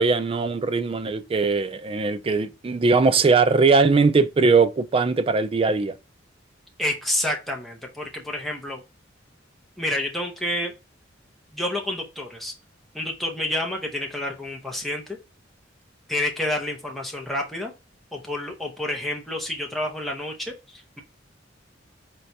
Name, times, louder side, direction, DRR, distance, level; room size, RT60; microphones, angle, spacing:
voice 1, 0.0-5.9, right 4 dB, 30° right, 0.3 m, -20 dB
voice 2, 6.8-8.8 9.8-10.7 11.5-12.5 12.9-15.2 16.1-17.7 18.1-21.0, left 1 dB, ahead, 0.9 m, -29 dB
4.5 x 3.1 x 2.7 m
head